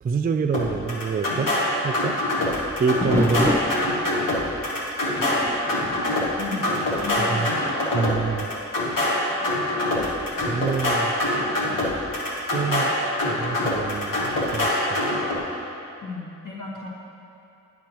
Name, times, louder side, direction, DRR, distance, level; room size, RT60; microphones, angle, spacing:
voice 1, 0.0-1.5 1.8-2.2 2.8-3.6 7.2-7.5 7.9-8.5 10.5-11.1 12.5-12.9 13.2-14.2 14.5-15.0, right 5 dB, 30° right, 6 dB, 0.3 m, -26 dB
sound 1, 0.5-15.4, left 1 dB, 90° left, 1.2 m, -25 dB
sound 2, 3.0-7.1 7.5-7.8 8.4-8.5 9.3-12.0 13.8-14.3, left 1 dB, 10° left, 0.7 m, -31 dB
voice 2, 7.0-7.7 16.0-16.9, left 4 dB, 70° left, -5 dB, 1.5 m, -34 dB
8.5 x 6.0 x 3.0 m, 2.7 s
cardioid pair, 40°, 32 cm